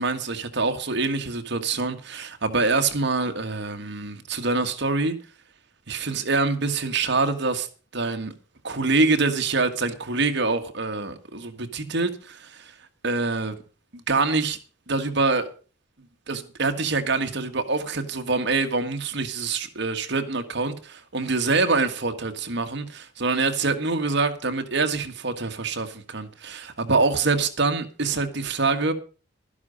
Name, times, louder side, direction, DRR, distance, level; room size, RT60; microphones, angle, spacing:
voice 1, 0.0-5.2 5.9-7.7 7.9-8.3 8.6-12.7 13.0-13.5 13.9-14.6 14.9-15.5 16.3-28.9, right 3 dB, 65° right, 1.7 m, -25 dB
12.5 x 11.0 x 5.3 m
head